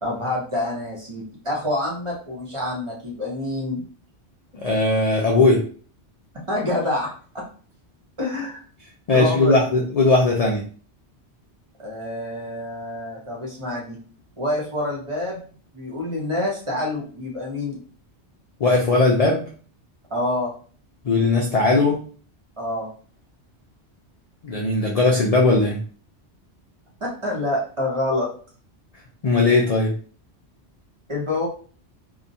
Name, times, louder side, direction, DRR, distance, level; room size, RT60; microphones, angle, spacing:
voice 1, 0.0-3.8 6.3-7.1 7.3-7.4 8.2-8.6 9.1-9.5 11.8-14.0 14.4-17.8 20.1-20.5 22.6-22.9 27.0-28.3 31.1-31.5, left 1 dB, 30° right, -3 dB, 0.7 m, -27 dB
voice 2, 4.5-5.6 9.1-10.6 18.6-19.5 21.0-22.0 24.4-25.8 29.2-29.9, left 3 dB, 60° left, 0 dB, 0.4 m, -18 dB
2.8 x 2.1 x 2.6 m, 0.41 s
omnidirectional pair, 1.1 m